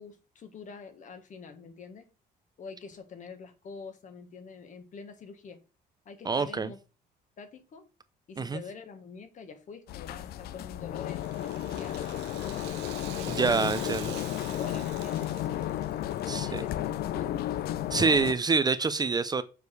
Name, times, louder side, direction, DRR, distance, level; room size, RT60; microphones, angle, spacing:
voice 1, 0.0-2.1 2.6-5.6 6.1-6.8 7.4-7.8 8.3-12.8 13.2-13.7 14.1-15.8 16.3-16.8 17.1-17.5, left 5 dB, 45° left, 8 dB, 1.6 m, -45 dB
voice 2, 6.2-6.7 8.4-8.6 13.3-14.1 16.3-16.6 17.9-19.4, right 4 dB, 25° right, 12 dB, 0.5 m, -26 dB
sound 1, 9.9-18.3, left 12 dB, 65° left, 0.5 m, -33 dB
Rattle (instrument), 11.1-16.4 16.7-16.8 17.6-17.7, right 13 dB, 85° right, 1.0 m, -46 dB
7.0 x 5.0 x 4.7 m, 0.32 s
cardioid pair, 110°, 17 cm